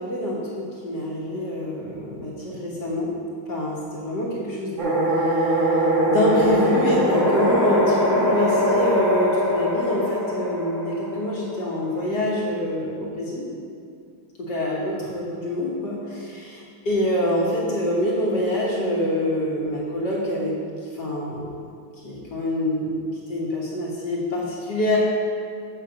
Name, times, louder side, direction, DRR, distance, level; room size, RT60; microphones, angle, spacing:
voice 1, 0.0-3.1 3.5-5.8 6.1-13.5 14.4-20.6 20.9-21.5 22.0-22.9 23.3-25.0, left 1 dB, 55° left, -5 dB, 2.0 m, -26 dB
sound 1, 4.8-11.7, equal, 65° right, 2.4 m, -22 dB
7.9 x 5.8 x 6.8 m, 2.4 s
omnidirectional pair, 2.4 m